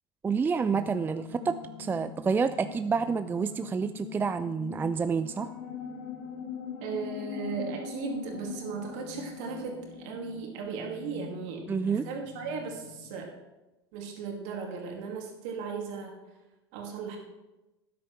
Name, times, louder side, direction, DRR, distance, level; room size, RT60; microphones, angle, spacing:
voice 1, 0.2-5.5 11.7-12.1, right 5 dB, 15° right, 12 dB, 0.3 m, -29 dB
Estrange music, 0.7-13.2, left 7 dB, 65° left, 2.0 m, -42 dB
voice 2, 6.8-13.3 13.9-16.2 16.7-17.2, right 5 dB, 55° right, 1 dB, 2.4 m, -37 dB
12.5 x 10.0 x 3.2 m, 1.1 s
figure-of-eight pair, 75°, 13 cm